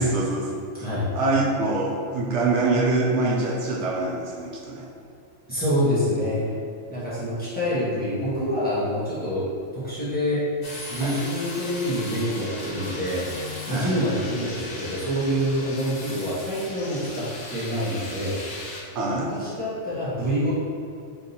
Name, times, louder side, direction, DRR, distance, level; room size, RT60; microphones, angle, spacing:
voice 1, 0.0-0.8 1.1-4.9 11.0-11.2 13.7-14.0 18.9-19.3, right 2 dB, 70° right, -3 dB, 0.9 m, -24 dB
voice 2, 5.5-6.5 6.9-9.5 9.7-10.4 10.9-13.3 13.7-18.4 19.1-20.5, equal, 10° left, -11 dB, 1.1 m, -26 dB
sound 1, 10.6-18.8, left 2 dB, 50° left, 0.8 m, -37 dB
3.7 x 2.6 x 4.1 m, 2.3 s
omnidirectional pair, 1.3 m